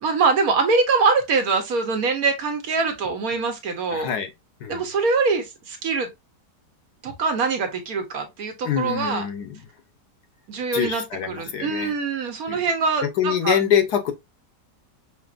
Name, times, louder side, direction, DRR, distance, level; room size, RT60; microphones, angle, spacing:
voice 1, 0.0-4.1 4.7-6.1 7.0-9.2 10.5-13.6, right 4 dB, 60° right, 1.2 m, -23 dB
voice 2, 3.9-4.3 4.6-4.8 8.6-9.6 10.7-11.9 12.5-12.6 13.2-14.1, left 9 dB, 70° left, 1.3 m, -24 dB
5.9 x 2.9 x 2.4 m
omnidirectional pair, 1.9 m